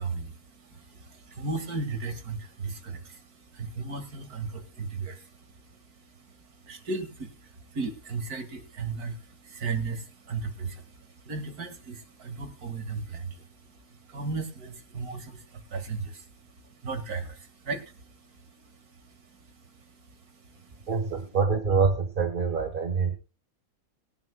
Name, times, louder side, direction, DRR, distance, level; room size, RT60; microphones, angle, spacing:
voice 1, 0.0-20.9, right 4 dB, 80° right, 7 dB, 2.5 m, -37 dB
voice 2, 20.9-23.2, right 5 dB, 35° right, 6 dB, 1.4 m, -25 dB
20.5 x 10.5 x 2.2 m, 0.30 s
omnidirectional pair, 1.6 m